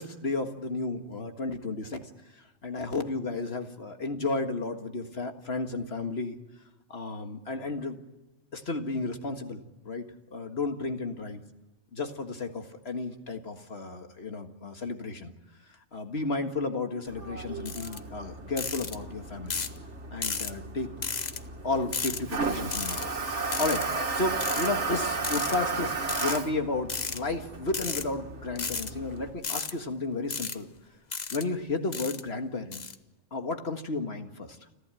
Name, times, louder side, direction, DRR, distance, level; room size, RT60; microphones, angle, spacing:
voice 1, 0.0-2.0 2.6-6.4 6.9-8.0 8.5-10.0 10.3-11.4 11.9-15.3 15.9-19.6 20.1-20.9 21.6-23.8 24.1-30.7 31.3-32.8 33.3-34.6, left 3 dB, 55° left, 6 dB, 2.0 m, -33 dB
Toilet flush, 17.1-29.3, right 4 dB, 70° right, 2.4 m, -34 dB
sound 1, 17.7-18.0 18.6-19.0 19.5-19.8 20.2-20.5 21.0-21.4 21.9-22.2 22.7-23.1 23.5-23.8 24.4-24.7 25.2-25.6 26.1-26.4 26.9-27.2 27.7-28.0 28.6-28.9 29.4-29.7 30.3-30.6 31.1-31.4 31.9-32.2 32.7-32.9, left 5 dB, 40° left, 1.0 m, -33 dB
30.0 x 12.0 x 9.0 m, 1.1 s
omnidirectional pair, 1.3 m